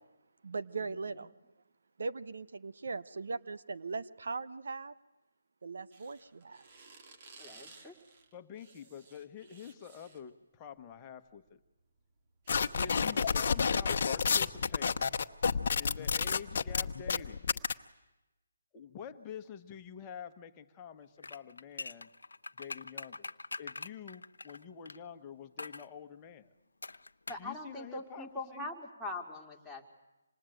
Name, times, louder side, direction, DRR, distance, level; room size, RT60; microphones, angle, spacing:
voice 1, 0.4-1.3 2.0-4.9 5.6-6.6, right 4 dB, 70° right, 13 dB, 1.0 m, -39 dB
sound 1, 5.9-10.3 11.3-11.5 11.8-13.7, right 4 dB, 40° right, 2.7 m, -57 dB
voice 2, 7.4-7.9 27.3-29.9, left 2 dB, ahead, -3 dB, 2.6 m, -42 dB
voice 3, 8.3-11.6 12.8-15.1 15.8-17.5 18.7-22.1 22.6-26.5 27.4-28.7, left 7 dB, 20° left, 8 dB, 1.3 m, -47 dB
sound 2, 12.5-17.7, left 6 dB, 50° left, 1.0 m, -29 dB
sound 3, 21.2-25.0 25.6-25.9 26.8-27.5 27.8-27.9, left 3 dB, 90° left, 0.8 m, -43 dB
26.5 x 20.0 x 9.2 m, 1.0 s
hypercardioid pair, 160°, 0 cm